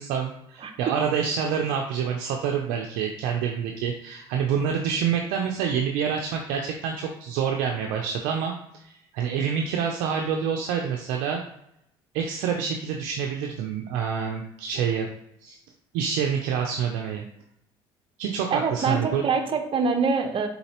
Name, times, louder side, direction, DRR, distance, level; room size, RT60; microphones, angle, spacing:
voice 1, 0.0-8.5 8.8-11.4 12.1-15.1 15.4-15.6 15.9-17.2 18.2-19.2, right 7 dB, 85° right, 2 dB, 0.5 m, -27 dB
voice 2, 0.6-0.9 18.5-20.5, right 5 dB, 45° right, 6 dB, 0.7 m, -25 dB
4.0 x 3.9 x 2.9 m, 0.77 s
supercardioid pair, 75°, 12 cm